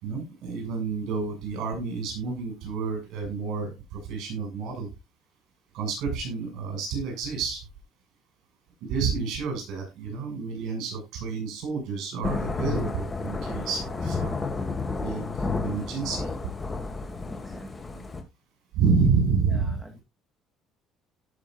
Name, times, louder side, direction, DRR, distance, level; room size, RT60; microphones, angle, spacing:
voice 1, 0.0-4.9 5.7-7.6 8.8-14.5 15.0-15.2 15.6-16.3 18.7-19.8, right 5 dB, 70° right, 3 dB, 6.8 m, -29 dB
Thunder / Rain, 12.2-18.2, left 3 dB, 20° left, 1.9 m, -31 dB
voice 2, 17.3-18.1 19.5-20.0, right 1 dB, 5° right, 2 dB, 1.9 m, -46 dB
17.5 x 6.2 x 2.5 m, 0.21 s
cardioid pair, 135°, 0 cm